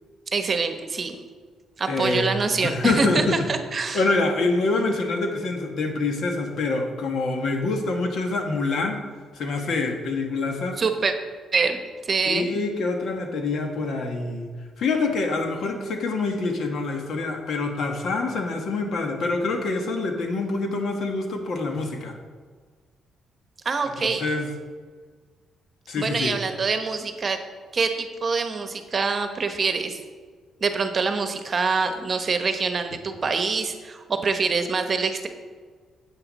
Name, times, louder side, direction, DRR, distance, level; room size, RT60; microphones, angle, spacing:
voice 1, 0.3-1.2 1.8-4.0 10.8-11.1 11.5-11.8 12.1-12.5 23.6-24.2 26.0-27.4 27.7-30.0 30.6-35.3, right 4 dB, 40° right, 7 dB, 1.0 m, -25 dB
voice 2, 1.9-2.3 2.6-3.5 3.9-9.0 9.3-10.8 12.2-14.5 14.8-22.2 24.0-24.5 25.9-26.4, left 3 dB, 65° left, 4 dB, 1.5 m, -26 dB
9.7 x 8.2 x 4.1 m, 1.5 s
cardioid pair, 90°, 0 cm